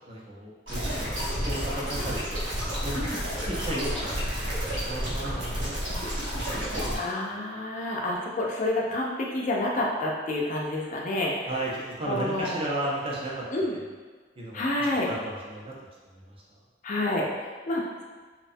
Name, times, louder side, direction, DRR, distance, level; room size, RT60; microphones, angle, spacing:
voice 1, 0.1-1.1 1.4-2.5 2.8-3.0 3.4-6.0 6.5-7.0 11.5-11.7 12.0-13.4 14.4-14.7 15.0-15.7, right 1 dB, 30° right, -5 dB, 0.5 m, -34 dB
sound 1, 0.7-7.0, equal, 90° right, 0.9 m, -30 dB
voice 2, 7.0-11.5 12.1-12.6 13.5-13.7 14.5-15.1 16.8-18.0, left 1 dB, 45° left, -2 dB, 0.4 m, -29 dB
2.6 x 2.2 x 2.5 m, 1.4 s
head